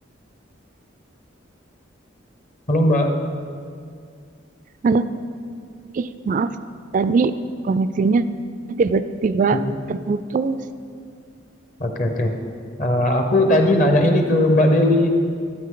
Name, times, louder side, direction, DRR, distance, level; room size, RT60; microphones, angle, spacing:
voice 1, 2.7-3.1 9.5-9.6 11.8-12.3 12.8-15.2, left 1 dB, 40° left, 4 dB, 0.8 m, -18 dB
voice 2, 6.0-6.5 6.9-7.3 7.7-8.2 8.8-9.6 10.1-10.6, right 4 dB, 40° right, 13 dB, 0.3 m, -20 dB
13.0 x 8.2 x 3.8 m, 2.2 s
head